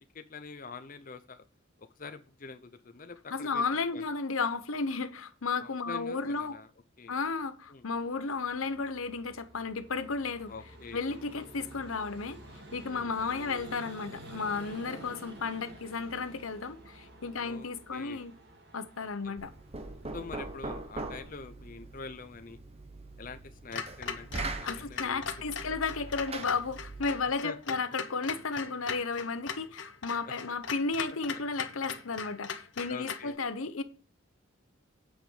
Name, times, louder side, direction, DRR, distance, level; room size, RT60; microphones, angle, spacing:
voice 1, 0.1-1.4 1.8-3.6 3.9-4.1 5.6-6.7 7.0-7.1 7.7-7.8 10.5-11.2 12.9-13.1 17.3-18.3 19.2-19.4 20.1-22.6 23.2-25.2 25.6-25.8 27.4-27.8 30.2-30.3 32.9-33.4, left 4 dB, 40° left, 0.6 m, -45 dB
voice 2, 3.3-6.6 7.1-10.5 10.9-12.4 12.7-18.3 18.7-19.5 24.6-33.8, left 4 dB, 90° left, 1.0 m, -33 dB
Vehicle, 7.6-22.2, right 1 dB, 50° right, 2.3 m, -50 dB
Knock, 19.4-27.3, right 3 dB, 30° right, 1.0 m, -42 dB
Clock, 23.7-33.3, left 6 dB, 65° left, 1.0 m, -40 dB
9.0 x 5.2 x 7.2 m
head